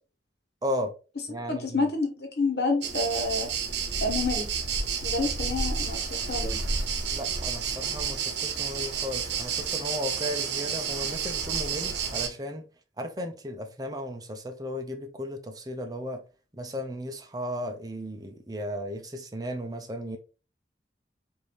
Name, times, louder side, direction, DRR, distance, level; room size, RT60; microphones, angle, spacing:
voice 1, 0.6-0.9 1.3-1.9 7.1-12.7 13.0-16.2 16.5-20.2, equal, 20° right, 0.6 m, -35 dB
voice 2, 1.5-3.5 4.0-4.5 5.0-6.6, left 3 dB, 65° left, 1.2 m, -28 dB
sound 1, 2.8-12.3, right 6 dB, 75° right, 0.8 m, -30 dB
4.7 x 2.7 x 3.4 m
head